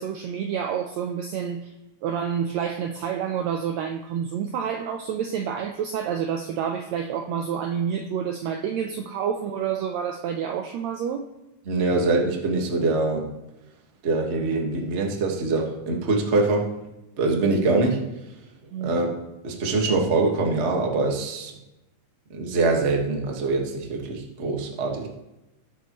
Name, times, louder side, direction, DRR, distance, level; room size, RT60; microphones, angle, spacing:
voice 1, 0.0-1.7 2.0-11.3 18.7-19.0, right 8 dB, 85° right, 5 dB, 1.5 m, -28 dB
voice 2, 11.7-13.2 14.0-16.6 17.2-18.0 18.8-19.1 19.4-21.5 22.3-25.1, right 3 dB, 55° right, 0 dB, 0.7 m, -23 dB
18.0 x 6.9 x 3.0 m, 0.94 s
omnidirectional pair, 3.8 m